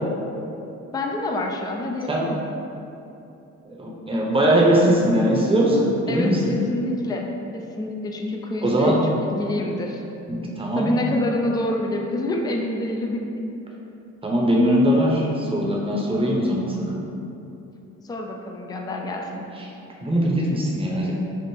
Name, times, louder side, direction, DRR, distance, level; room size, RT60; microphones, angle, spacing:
voice 1, 0.9-2.4 6.1-7.2 7.5-10.0 10.8-13.5 18.0-19.5, left 1 dB, 15° left, 1 dB, 0.4 m, -27 dB
voice 2, 3.7-6.5 8.6-9.0 10.3-10.9 14.2-17.0 20.0-21.1, equal, 20° right, -3 dB, 0.8 m, -20 dB
3.5 x 2.5 x 4.2 m, 2.8 s
cardioid pair, 90°, 30 cm